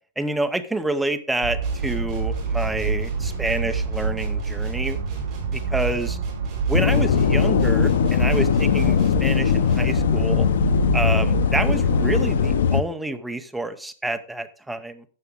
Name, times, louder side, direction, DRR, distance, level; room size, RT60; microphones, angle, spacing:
voice 1, 0.2-5.0 5.5-6.2 6.7-10.5 10.9-15.0, right 2 dB, 5° right, 7 dB, 0.7 m, -28 dB
sound 1, 1.4-12.6, right 5 dB, 55° right, 3.4 m, -27 dB
sound 2, 1.6-10.1, right 3 dB, 20° right, 4.3 m, -39 dB
sound 3, 6.7-12.8, left 8 dB, 75° left, 0.8 m, -20 dB
12.5 x 8.3 x 3.6 m, 0.40 s
supercardioid pair, 180°, 0 cm